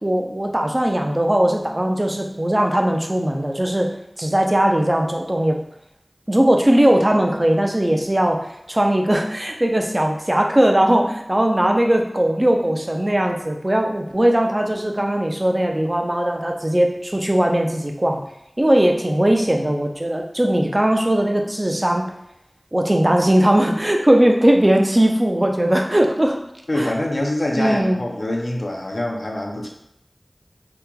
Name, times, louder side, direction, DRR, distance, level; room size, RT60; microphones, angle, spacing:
voice 1, 0.0-3.9 4.2-5.6 6.3-8.4 8.7-18.2 18.6-22.1 22.7-26.4 26.8-26.9 27.6-28.0, right 1 dB, 35° right, 2 dB, 0.5 m, -19 dB
voice 2, 26.7-29.7, left 1 dB, 80° left, 0 dB, 0.5 m, -24 dB
2.9 x 2.2 x 3.7 m, 0.79 s
wide cardioid pair, 40°, 0 cm